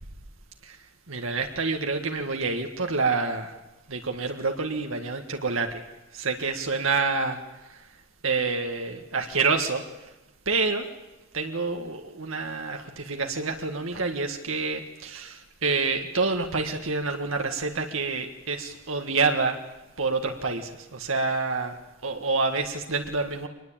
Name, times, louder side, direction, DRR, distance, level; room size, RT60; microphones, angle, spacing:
voice 1, 0.6-3.5 3.9-5.9 6.1-7.9 8.2-10.1 10.5-10.9 11.3-19.6 20.0-23.5, right 4 dB, 70° right, 4 dB, 1.7 m, -28 dB
24.0 x 20.5 x 8.9 m, 1.0 s
head